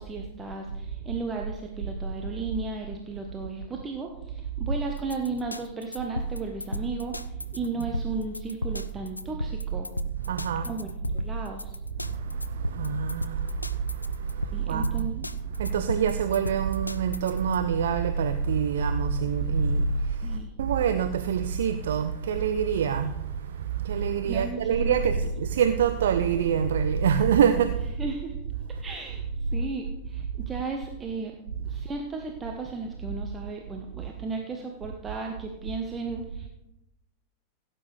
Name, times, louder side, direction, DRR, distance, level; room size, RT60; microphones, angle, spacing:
voice 1, 0.0-9.9 10.6-11.8 14.5-15.3 20.2-20.5 24.0-25.0 28.0-28.4 28.8-29.2 29.5-31.3 31.7-36.5, right 3 dB, 20° right, 1.2 m, -35 dB
sound 1, 4.7-17.6, right 1 dB, 85° left, 0.4 m, -33 dB
voice 2, 10.3-10.7 12.0-15.1 15.5-27.9, right 7 dB, 60° right, 0.5 m, -26 dB
16.5 x 8.7 x 3.4 m
figure-of-eight pair, 90°, 0 cm